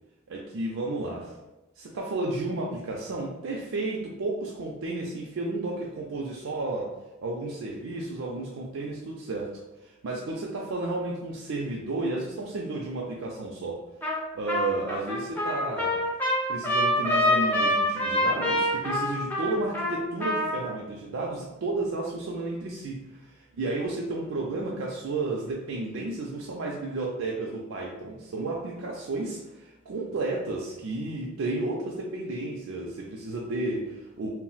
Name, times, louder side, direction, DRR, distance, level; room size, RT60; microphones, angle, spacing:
voice 1, 0.3-1.3 1.8-6.9 7.2-13.8 14.3-16.0 16.5-34.3, right 2 dB, 85° right, -2 dB, 0.4 m, -32 dB
Trumpet, 14.0-14.2 14.5-20.7, left 1 dB, 10° left, 0.5 m, -26 dB
2.3 x 2.0 x 3.8 m, 0.99 s
head